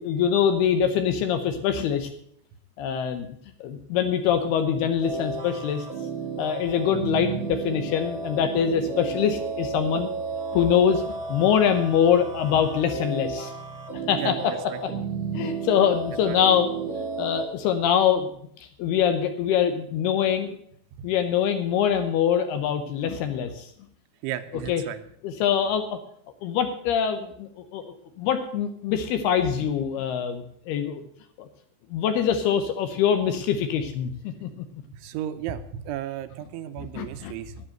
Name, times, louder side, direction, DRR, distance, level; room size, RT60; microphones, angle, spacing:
voice 1, 0.0-2.1 2.8-3.3 3.6-5.9 6.4-10.1 10.5-13.5 13.9-14.5 15.3-18.3 18.6-20.6 21.0-23.7 24.7-24.8 25.2-26.0 26.4-31.0 31.4-31.5 31.9-34.5 37.0-37.3, left 8 dB, 75° left, 8 dB, 2.5 m, -24 dB
sound 1, 5.0-17.4, right 4 dB, 30° right, 1.8 m, -33 dB
voice 2, 14.2-14.8 16.3-16.4 21.0-21.1 24.2-25.0 34.9-37.6, right 11 dB, 85° right, 10 dB, 3.3 m, -34 dB
10.0 x 10.0 x 7.7 m, 0.67 s
omnidirectional pair, 5.3 m